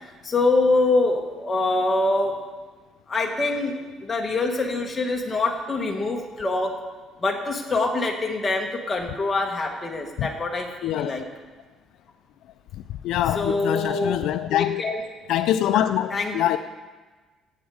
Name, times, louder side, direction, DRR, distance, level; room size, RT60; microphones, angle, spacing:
voice 1, 0.2-2.3 3.1-6.7 7.2-11.2 13.3-14.2 14.8-15.0 15.6-16.3, left 2 dB, 20° left, 1.6 m, -24 dB
voice 2, 10.8-11.1 13.0-14.8 15.3-16.6, left 12 dB, 70° left, 0.4 m, -24 dB
15.5 x 8.2 x 4.9 m
cardioid pair, 160°, 0 cm